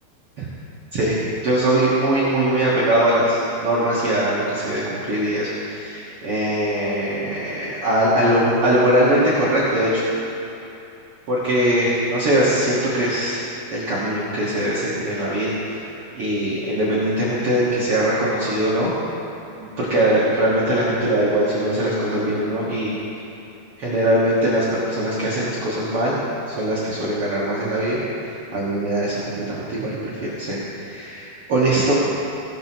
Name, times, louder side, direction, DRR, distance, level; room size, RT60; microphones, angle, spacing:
voice 1, 1.4-9.9 11.3-15.9 16.1-18.9 19.6-22.9 23.8-26.2 26.5-31.9, right 1 dB, 85° right, -8 dB, 1.2 m, -21 dB
16.0 x 5.6 x 6.0 m, 2.9 s
omnidirectional pair, 5.0 m